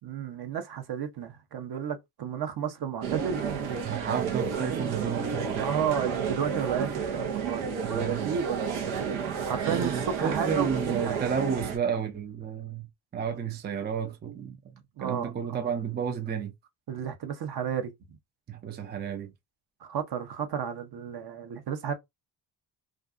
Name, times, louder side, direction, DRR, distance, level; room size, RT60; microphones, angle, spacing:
voice 1, 0.0-3.4 4.7-5.2 5.6-11.2 15.0-15.7 16.9-18.2 19.8-21.9, right 8 dB, 55° right, 0.8 m, -33 dB
sound 1, 3.0-11.8, right 6 dB, 90° right, 0.8 m, -31 dB
voice 2, 3.8-5.7 7.8-8.3 9.7-12.9 13.1-16.5 18.5-19.3, right 7 dB, 25° right, 0.4 m, -32 dB
2.5 x 2.3 x 2.4 m
cardioid pair, 70°, 47 cm